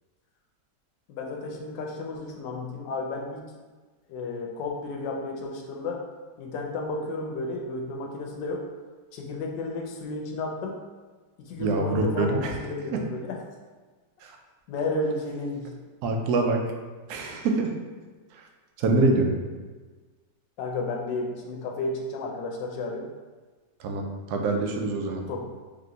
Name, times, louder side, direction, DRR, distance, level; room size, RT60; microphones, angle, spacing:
voice 1, 1.1-3.5 4.1-6.0 6.4-8.6 9.1-10.8 11.4-13.4 14.7-15.7 20.6-23.1 25.3-25.5, left 2 dB, 80° left, 0 dB, 1.2 m, -32 dB
voice 2, 11.6-12.5 12.9-13.0 14.2-14.4 16.0-16.6 17.1-17.7 18.3-18.5 18.8-19.3 23.8-25.2, right 2 dB, 70° right, 2 dB, 1.0 m, -25 dB
3.4 x 2.9 x 3.8 m, 1.3 s
omnidirectional pair, 1.9 m